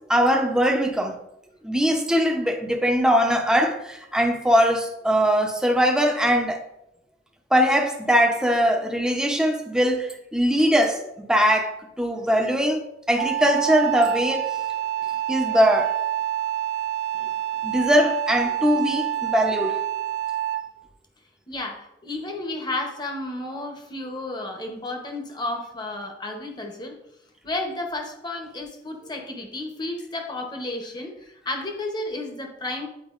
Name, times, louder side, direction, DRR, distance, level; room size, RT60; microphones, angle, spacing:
voice 1, 0.1-1.2 1.6-6.6 7.5-12.8 13.1-14.5 15.3-15.9 17.6-19.8, equal, 5° right, 0.6 m, -21 dB
Wind instrument woodwind instrument, 13.2-20.8, right 12 dB, 75° right, 0.4 m, -27 dB
voice 2, 21.5-27.0 27.4-32.9, left 2 dB, 25° left, 0.8 m, -32 dB
8.8 x 4.6 x 2.5 m
head